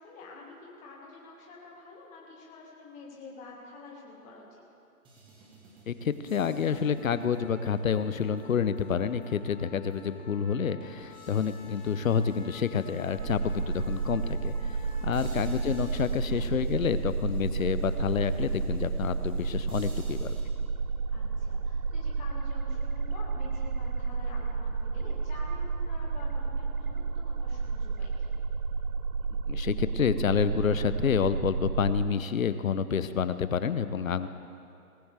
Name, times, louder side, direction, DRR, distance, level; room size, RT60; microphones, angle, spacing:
voice 1, 0.0-4.6 15.0-15.3 21.1-28.3, left 3 dB, 15° left, -3 dB, 1.8 m, -48 dB
sound 1, 5.0-9.5 9.9-10.0 10.8-20.4, right 1 dB, 10° right, 1.4 m, -55 dB
voice 2, 5.9-14.8 15.0-20.4 29.5-34.3, left 7 dB, 65° left, 13 dB, 0.8 m, -28 dB
Trumpet, 6.6-16.1, left 4 dB, 30° left, 1.5 m, -52 dB
sound 2, 13.2-32.1, right 4 dB, 70° right, 1.0 m, -31 dB
18.5 x 15.0 x 3.4 m, 2.6 s
figure-of-eight pair, 145°, 44 cm